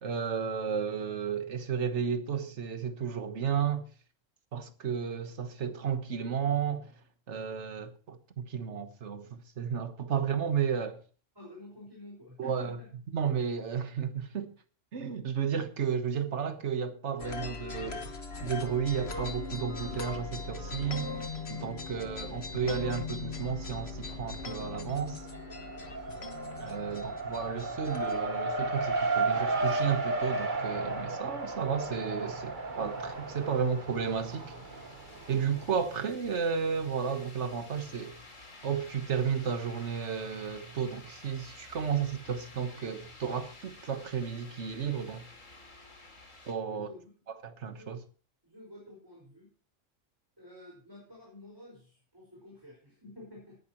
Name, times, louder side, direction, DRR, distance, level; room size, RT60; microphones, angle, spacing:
voice 1, 0.0-3.8 4.5-6.9 7.3-11.0 12.4-12.8 13.1-14.5 14.9-18.1 18.4-21.1 21.5-25.3 26.6-34.5 35.3-38.2 38.6-45.3 46.4-46.9 47.4-48.0, right 7 dB, 65° right, 1.5 m, -33 dB
voice 2, 11.3-12.9 26.6-27.1 46.6-47.1 47.8-48.0 48.4-49.5 50.4-53.6, left 1 dB, 15° right, 5.3 m, -51 dB
sound 1, 17.2-28.2, left 3 dB, 55° left, 1.5 m, -40 dB
Race car auto racing, 23.3-24.1 24.4-35.7, right 3 dB, 40° right, 1.6 m, -34 dB
sound 2, 31.7-46.5, left 2 dB, 85° left, 3.3 m, -52 dB
18.5 x 11.0 x 3.0 m
omnidirectional pair, 1.3 m